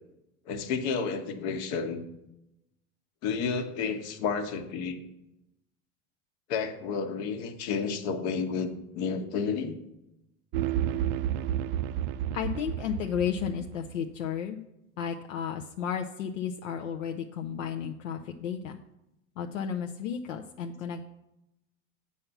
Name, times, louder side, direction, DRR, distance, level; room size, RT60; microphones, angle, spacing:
voice 1, 0.5-2.1 3.2-5.0 6.5-9.8, left 5 dB, 60° left, 7 dB, 1.2 m, -31 dB
sound 1, 10.5-13.9, right 11 dB, 50° right, 0.4 m, -31 dB
voice 2, 12.3-14.6 15.0-18.8 19.4-21.0, left 8 dB, 80° left, 4 dB, 0.7 m, -33 dB
7.5 x 5.7 x 5.8 m, 0.88 s
hypercardioid pair, 90°, 38 cm